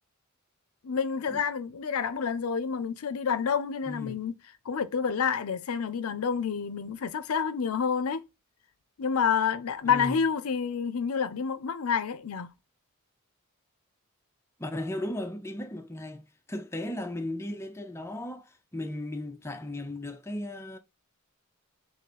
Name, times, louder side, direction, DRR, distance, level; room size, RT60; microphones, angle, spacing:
voice 1, 0.8-4.3 4.7-8.2 9.0-12.5, left 6 dB, 85° left, 0.5 m, -28 dB
voice 2, 3.9-4.2 9.8-10.2 14.6-20.8, left 1 dB, 10° left, 0.5 m, -36 dB
3.8 x 2.6 x 4.1 m
head